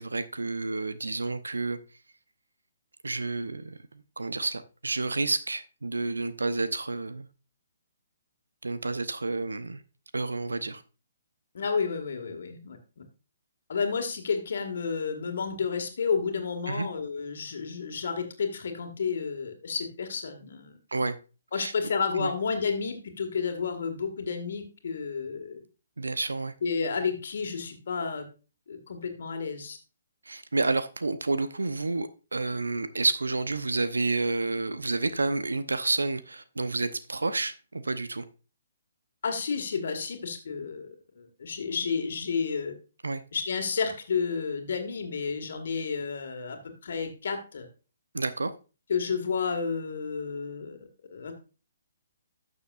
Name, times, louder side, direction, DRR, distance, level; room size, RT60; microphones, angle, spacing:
voice 1, 0.0-1.8 3.0-7.3 8.6-9.8 10.1-10.8 16.7-16.9 20.9-21.2 21.6-21.7 22.2-22.3 26.0-26.5 30.3-38.2 43.0-43.2 48.1-48.5, right 3 dB, 80° right, 12 dB, 0.8 m, -30 dB
voice 2, 11.5-12.8 13.7-20.7 21.5-25.6 26.6-28.2 28.7-29.8 39.2-40.9 41.2-42.7 43.3-47.7 48.9-51.3, left 5 dB, 60° left, 5 dB, 1.9 m, -31 dB
12.0 x 6.8 x 2.5 m, 0.33 s
figure-of-eight pair, 135°, 0 cm